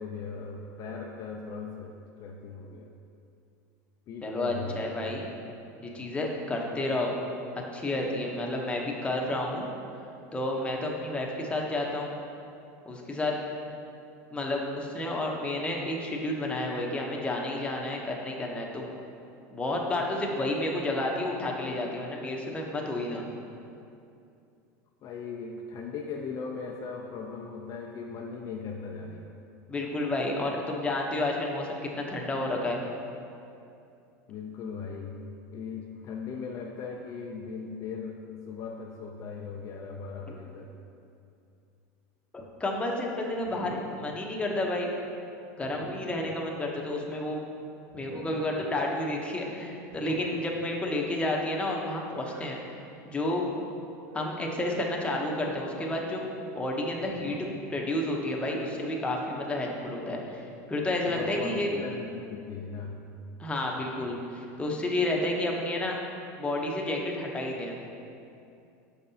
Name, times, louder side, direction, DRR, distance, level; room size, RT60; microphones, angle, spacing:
voice 1, 0.0-2.9 4.1-4.9 25.0-29.4 34.3-35.2 35.5-40.7 61.0-63.0, left 5 dB, 45° left, 1 dB, 0.5 m, -38 dB
voice 2, 4.2-5.3 5.8-7.1 7.7-9.7 10.3-12.1 12.8-13.4 14.3-18.9 19.5-23.3 29.7-32.8 42.3-44.9 45.6-47.4 47.9-52.6 53.1-53.5 54.1-60.4 60.7-61.7 63.4-66.0 66.4-67.8, left 1 dB, 15° left, -1 dB, 0.8 m, -31 dB
sound 1, 43.4-44.1 45.6-46.3 47.9-48.6 49.9-50.6 52.2-52.5 53.9-54.4 55.6-55.9 57.0-57.7, right 1 dB, 85° right, 1.3 m, -46 dB
6.6 x 5.3 x 2.8 m, 2.6 s
supercardioid pair, 105°, 9 cm